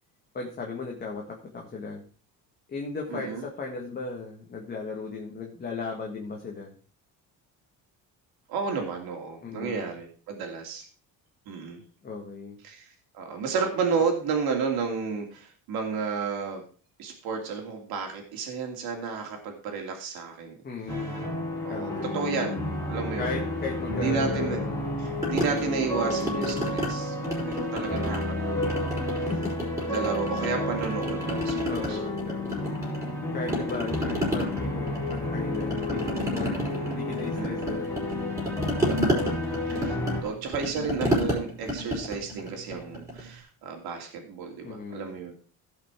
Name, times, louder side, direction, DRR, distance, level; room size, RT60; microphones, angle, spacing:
voice 1, 0.3-2.0 2.7-6.7 9.4-9.9 12.0-12.6 20.6-21.3 21.7-22.1 23.2-24.9 25.9-26.2 29.3-29.7 31.7-32.7 33.3-38.0 44.6-45.1, left 4 dB, 25° left, 0 dB, 1.7 m, -36 dB
voice 2, 3.1-3.4 8.5-10.9 11.5-11.8 12.6-16.6 17.0-20.6 21.6-23.4 23.9-24.6 25.0-27.2 27.4-29.3 29.8-32.0 33.4-33.9 36.4-36.9 37.3-37.8 39.7-40.0 40.2-45.3, right 5 dB, 80° right, 2 dB, 2.7 m, -32 dB
sound 1, 20.9-40.2, left 1 dB, 5° left, 2.5 m, -31 dB
sound 2, 25.2-26.9 27.2-28.3 28.6-30.5 30.8-33.2 33.5-43.3, right 1 dB, 10° right, 4.8 m, -31 dB
16.0 x 5.7 x 4.6 m, 0.40 s
cardioid pair, 170°, 37 cm